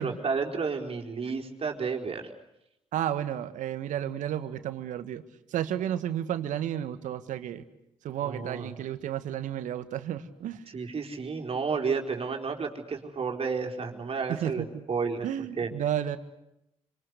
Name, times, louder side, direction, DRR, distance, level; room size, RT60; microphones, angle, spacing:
voice 1, 0.0-2.3 8.2-8.7 10.7-15.3 15.6-15.7, right 5 dB, 45° right, 2 dB, 4.5 m, -31 dB
voice 2, 2.9-5.2 5.5-7.6 8.0-10.7 14.3-14.8 15.2-16.2, right 10 dB, 70° right, 12 dB, 1.7 m, -32 dB
26.5 x 26.0 x 8.2 m, 0.83 s
hypercardioid pair, 45°, 14 cm